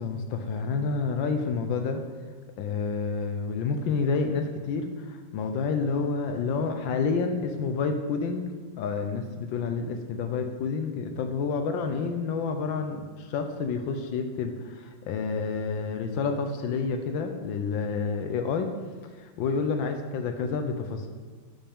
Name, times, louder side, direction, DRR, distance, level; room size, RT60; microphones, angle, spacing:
voice 1, 0.0-2.0 2.6-8.5 8.8-18.7 19.2-21.1, left 4 dB, 80° left, 6 dB, 1.4 m, -29 dB
12.0 x 5.8 x 3.6 m, 1.4 s
omnidirectional pair, 2.1 m